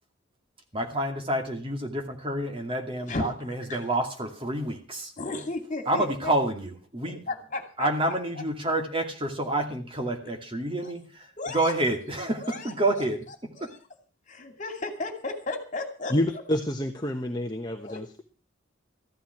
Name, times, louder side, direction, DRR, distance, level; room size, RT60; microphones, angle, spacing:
voice 1, 0.7-5.1 5.9-7.2 7.8-13.2 13.6-13.7, right 1 dB, 25° right, 3 dB, 2.4 m, -28 dB
voice 2, 3.1-3.8 5.2-6.3 7.0-8.4 10.8-10.9 11.4-11.7 12.4-13.0 13.5-13.8 14.3-16.4 17.8-18.2, left 2 dB, 40° left, 5 dB, 2.5 m, -35 dB
voice 3, 16.1-18.2, left 1 dB, 20° left, 3 dB, 1.1 m, -28 dB
14.5 x 11.5 x 6.0 m, 0.37 s
head